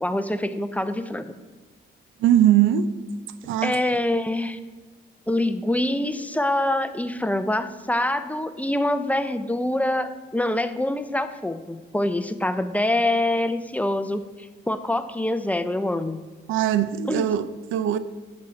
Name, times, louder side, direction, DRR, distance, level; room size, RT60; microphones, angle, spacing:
voice 1, 0.0-1.3 3.6-4.6 5.3-16.2 17.1-17.3, left 1 dB, 5° left, 0.6 m, -25 dB
voice 2, 2.2-2.9 3.4-3.8 16.5-18.0, right 11 dB, 85° right, 0.5 m, -20 dB
9.2 x 6.4 x 5.8 m
cardioid pair, 90°, 20 cm